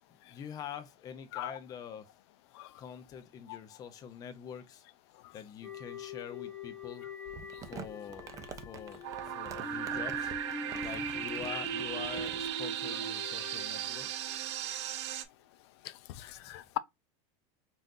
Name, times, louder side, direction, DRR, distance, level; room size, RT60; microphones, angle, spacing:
voice 1, 0.3-2.1 2.8-4.8 5.3-7.1 7.7-9.1 9.3-10.4 10.8-14.3 16.4-16.6, left 8 dB, 25° left, 0.6 m, -45 dB
sound 1, 5.6-14.8, left 1 dB, 5° left, 1.0 m, -43 dB
Crumpling crinkling, 7.3-12.5, right 7 dB, 25° right, 0.5 m, -47 dB
sound 2, 9.0-15.2, right 11 dB, 75° right, 0.7 m, -37 dB
voice 2, 15.8-16.8, left 15 dB, 70° left, 0.5 m, -40 dB
5.6 x 2.6 x 2.5 m
supercardioid pair, 155°, 15 cm